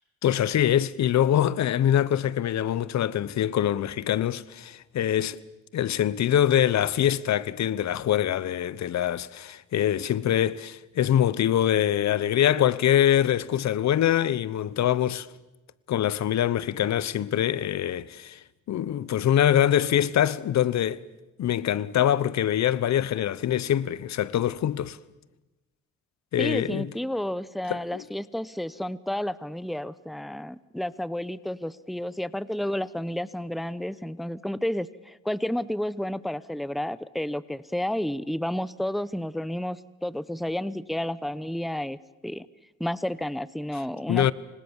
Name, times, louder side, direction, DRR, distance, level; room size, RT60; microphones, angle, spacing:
voice 1, 0.2-5.4 5.7-15.3 15.9-18.4 18.7-21.0 21.4-25.0 26.3-26.9 27.7-28.0 44.1-44.3, left 11 dB, 65° left, 1.0 m, -24 dB
voice 2, 26.4-42.0 42.2-42.5 42.8-44.3, left 1 dB, ahead, 0.9 m, -31 dB
28.0 x 25.5 x 7.3 m
cardioid pair, 90°, 30 cm